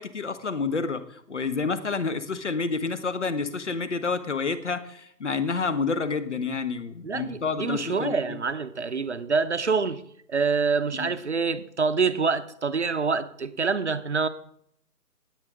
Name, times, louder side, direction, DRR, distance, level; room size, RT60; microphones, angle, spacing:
voice 1, 0.0-8.4 10.9-11.1, left 4 dB, 45° left, 1.1 m, -29 dB
voice 2, 7.0-10.0 10.3-14.3, right 4 dB, 45° right, 0.8 m, -26 dB
19.5 x 8.1 x 3.7 m
figure-of-eight pair, 155°, 48 cm